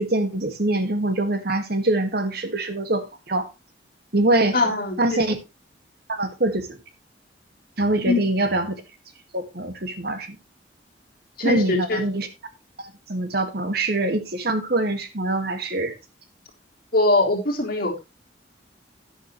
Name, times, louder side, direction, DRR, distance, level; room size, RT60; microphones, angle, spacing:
voice 1, 0.0-3.5 4.1-4.6 5.0-5.4 6.1-6.8 7.8-8.8 9.3-10.4 11.4-12.3 12.8-16.0, right 2 dB, 60° right, 1.9 m, -24 dB
voice 2, 4.5-5.2 8.1-8.2 11.4-12.0 16.9-18.0, left 2 dB, 55° left, 3.6 m, -22 dB
11.5 x 10.0 x 3.1 m
head